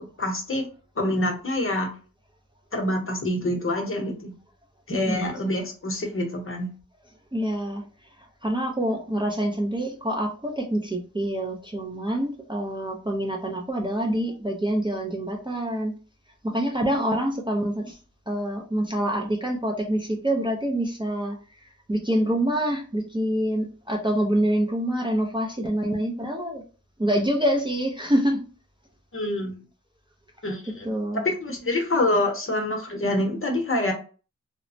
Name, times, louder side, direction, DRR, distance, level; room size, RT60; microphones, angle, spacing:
voice 1, 0.2-0.7 1.0-1.9 2.7-4.3 4.9-6.7 29.1-29.6 30.4-33.9, left 1 dB, 40° left, 2 dB, 0.8 m, -26 dB
voice 2, 7.3-7.8 8.4-15.9 16.4-18.0 18.3-21.4 21.9-26.6 27.0-28.5 30.8-31.2, right 1 dB, 15° right, 0 dB, 0.5 m, -26 dB
3.1 x 2.0 x 2.6 m, 0.36 s
wide cardioid pair, 80°, 31 cm